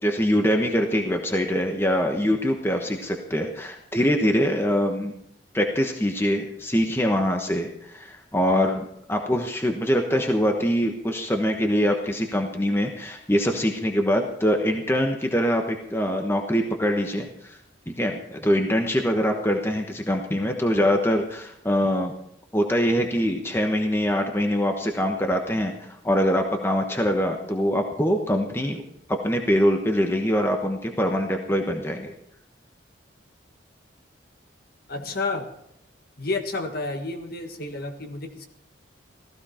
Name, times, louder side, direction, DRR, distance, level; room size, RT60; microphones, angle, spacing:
voice 1, 0.0-5.1 5.5-17.6 18.0-22.1 22.5-25.7 26.0-28.8 29.1-32.1, equal, 10° left, 3 dB, 1.1 m, -23 dB
voice 2, 34.9-35.5 36.2-38.5, left 3 dB, 50° left, 5 dB, 1.6 m, -30 dB
15.5 x 14.5 x 4.4 m, 0.74 s
head